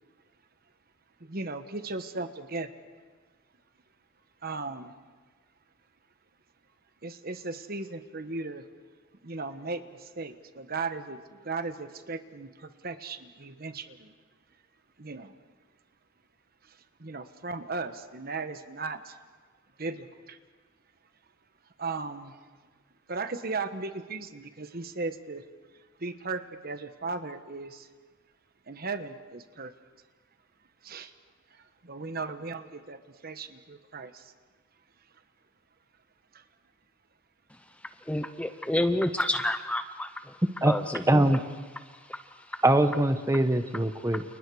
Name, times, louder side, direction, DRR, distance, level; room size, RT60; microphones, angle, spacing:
voice 1, 1.2-2.7 4.4-5.0 7.0-8.7 9.2-14.1 15.0-15.3 16.6-19.2 19.8-20.4 21.8-22.4 23.1-25.4 26.0-27.9 28.7-29.7 30.8-31.1 31.5-34.3 36.3-36.4, right 3 dB, 45° right, 9 dB, 1.2 m, -37 dB
voice 2, 38.1-40.3 40.6-41.4 42.1-42.6, left 1 dB, 5° left, 9 dB, 0.7 m, -30 dB
voice 3, 41.1-41.4 42.6-44.2, right 1 dB, 15° right, 8 dB, 1.0 m, -22 dB
29.5 x 29.5 x 4.8 m, 1.4 s
head